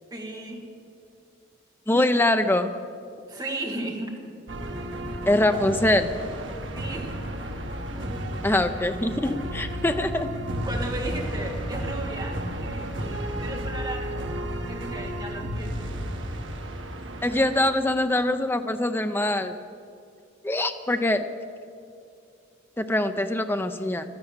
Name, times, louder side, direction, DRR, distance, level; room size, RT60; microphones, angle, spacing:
voice 1, 0.1-0.6 3.3-4.1 6.7-7.2 10.6-14.3 14.7-15.9, right 2 dB, 20° right, 1 dB, 1.7 m, -35 dB
voice 2, 1.9-2.7 5.3-6.1 8.4-10.3 17.2-19.5 20.4-21.3 22.8-24.0, left 1 dB, 10° left, 8 dB, 0.5 m, -23 dB
sound 1, 4.5-17.6, equal, 70° right, 1.3 m, -32 dB
12.5 x 10.5 x 8.8 m, 2.4 s
head